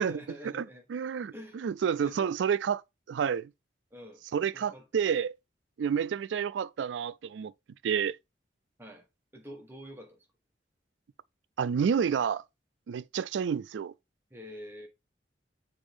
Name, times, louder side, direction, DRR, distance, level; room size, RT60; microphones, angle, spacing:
voice 1, 0.0-0.9 1.3-1.6 2.0-2.3 3.9-4.2 4.5-5.0 8.8-9.1 9.3-10.3 14.3-14.9, equal, 15° right, 1.1 m, -46 dB
voice 2, 0.9-1.3 1.6-2.8 3.1-3.5 4.3-5.3 5.8-7.5 7.8-8.2 11.6-12.4 12.9-13.9, right 7 dB, 90° right, 0.3 m, -29 dB
7.0 x 4.1 x 3.5 m
head